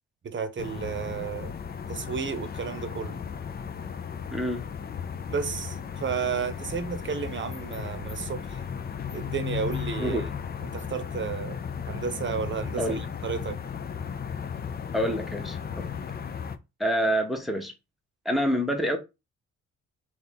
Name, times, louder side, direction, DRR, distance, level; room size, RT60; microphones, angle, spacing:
voice 1, 0.2-1.5 1.9-3.2 5.3-8.6 9.1-10.2 10.6-11.6 11.9-13.6, right 6 dB, 40° right, 0.9 m, -32 dB
sound 1, 0.6-16.6, left 7 dB, 30° left, 0.5 m, -35 dB
voice 2, 4.3-4.6 10.0-10.3 12.8-13.1 14.9-15.9 16.8-17.7 18.2-19.0, equal, ahead, 0.9 m, -27 dB
3.5 x 2.8 x 4.0 m
cardioid pair, 90°, 30 cm